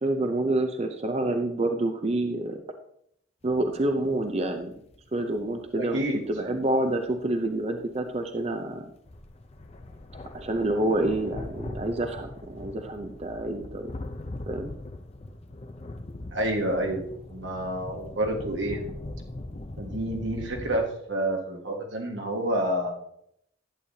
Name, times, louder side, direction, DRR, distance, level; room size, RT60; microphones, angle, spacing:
voice 1, 0.0-2.6 3.4-4.8 5.1-8.9 10.3-13.9 14.5-14.7, right 2 dB, 35° right, 6 dB, 0.6 m, -28 dB
sound 1, 3.4-7.6 7.9-8.1 8.4-8.5 8.8-8.9 9.1-20.8, left 1 dB, 35° left, 0.6 m, -41 dB
voice 2, 5.8-6.2 16.3-18.8 19.8-22.9, right 1 dB, 90° right, 2 dB, 1.6 m, -29 dB
11.5 x 8.4 x 2.8 m, 0.73 s
head